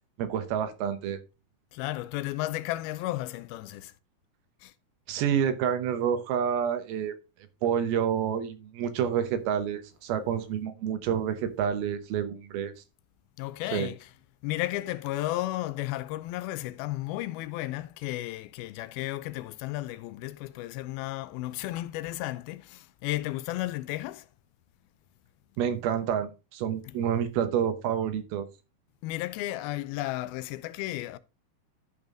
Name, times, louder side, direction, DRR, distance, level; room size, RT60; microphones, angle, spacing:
voice 1, 0.2-1.2 5.1-7.1 7.6-12.7 13.7-13.9 25.6-28.5, right 8 dB, 90° right, 3.0 m, -28 dB
voice 2, 1.7-3.9 4.6-4.7 13.4-14.1 14.4-24.3 26.9-27.0 29.0-31.2, left 16 dB, 85° left, 2.5 m, -33 dB
11.5 x 5.5 x 3.7 m
omnidirectional pair, 4.2 m